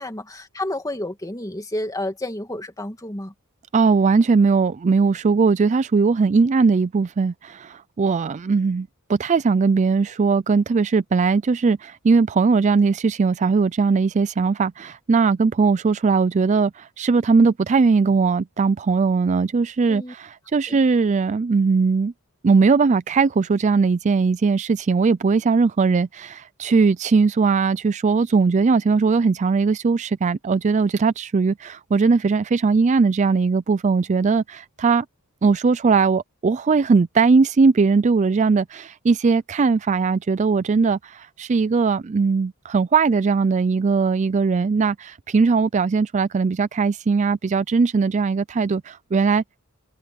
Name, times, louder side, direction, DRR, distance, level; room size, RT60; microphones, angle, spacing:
voice 1, 0.0-3.3 19.9-20.1 20.7-20.8, left 1 dB, 15° left, 2.1 m, -30 dB
voice 2, 3.7-22.1 22.4-35.1 35.4-49.4, right 4 dB, 30° right, 0.3 m, -19 dB
head